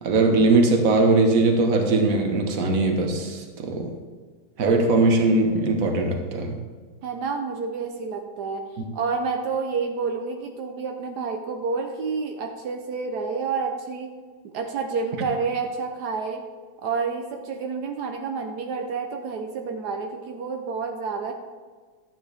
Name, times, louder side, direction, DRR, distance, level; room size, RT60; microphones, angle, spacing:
voice 1, 0.0-3.9 4.6-6.6, right 3 dB, 60° right, 3 dB, 1.6 m, -20 dB
voice 2, 7.0-8.6 8.9-14.1 14.4-16.4 16.8-21.3, right 5 dB, 85° right, 3 dB, 1.4 m, -29 dB
12.5 x 9.3 x 3.4 m, 1.5 s
omnidirectional pair, 1.7 m